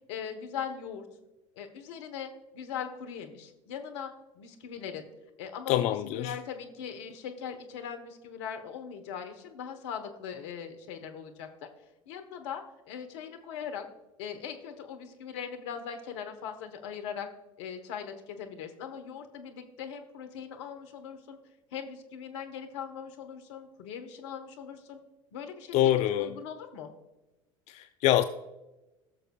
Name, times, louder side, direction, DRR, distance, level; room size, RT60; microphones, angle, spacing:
voice 1, 0.1-1.1 1.6-5.1 5.4-11.5 12.1-13.9 14.2-17.3 17.6-21.4 21.7-25.0 25.3-26.9, left 7 dB, 60° left, 6 dB, 1.1 m, -40 dB
voice 2, 5.7-6.4 25.7-26.4 27.7-28.2, left 12 dB, 45° left, 10 dB, 0.4 m, -25 dB
19.0 x 6.4 x 2.3 m, 1.0 s
figure-of-eight pair, 70°, 16 cm